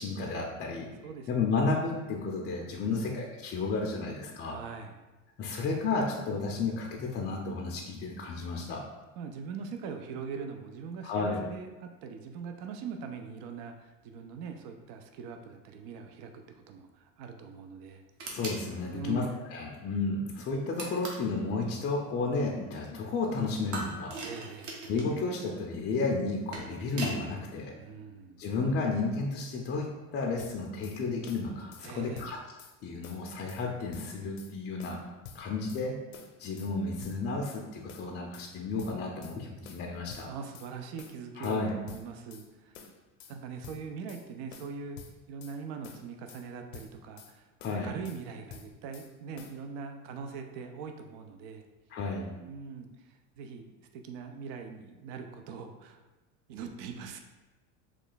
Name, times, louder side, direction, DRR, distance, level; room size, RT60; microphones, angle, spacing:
voice 1, 0.0-0.9 1.3-4.6 5.4-8.8 11.0-11.4 18.3-19.2 19.5-24.1 24.9-27.7 28.4-32.4 32.8-36.0 36.4-40.3 41.4-41.7 47.6-47.9 51.9-52.3, left 3 dB, 30° left, -1 dB, 0.4 m, -32 dB
voice 2, 2.8-3.2 4.4-5.0 9.2-18.0 18.9-19.4 24.2-24.8 27.7-28.5 31.8-32.3 40.3-42.8 43.3-47.5 47.8-51.6 52.4-56.0 56.5-57.2, right 5 dB, 60° right, 5 dB, 0.5 m, -42 dB
sound 1, 18.2-18.6 20.8-21.3 23.7-25.1 26.2-27.2, right 2 dB, 45° right, 0.9 m, -39 dB
sound 2, 30.4-31.0 31.3-31.9 32.1-32.7 33.0-33.6 33.9-34.5 34.8-35.8 36.1-36.7 37.0-37.6 37.9-38.5 38.8-39.4 39.6-40.7 41.0-41.6 41.9-42.5 42.7-43.4 43.6-44.2 44.5-45.6 45.8-46.4 46.7-47.3 47.6-48.2 48.5-49.1 49.4-49.6, left 6 dB, 85° left, 0.6 m, -49 dB
3.1 x 2.3 x 3.9 m, 1.1 s
supercardioid pair, 120°, 39 cm